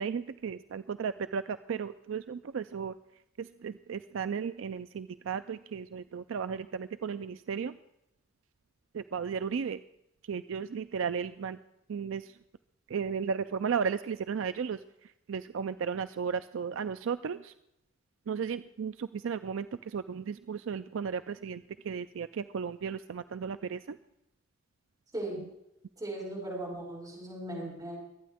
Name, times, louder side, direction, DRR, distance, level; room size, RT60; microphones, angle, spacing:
voice 1, 0.0-2.9 3.4-7.8 8.9-9.8 10.3-11.6 11.9-12.3 12.9-14.8 15.3-17.5 18.3-24.0, right 6 dB, 70° right, 12 dB, 0.4 m, -34 dB
voice 2, 26.0-28.0, right 1 dB, 20° right, -5 dB, 6.4 m, -37 dB
24.0 x 9.3 x 3.5 m, 0.85 s
head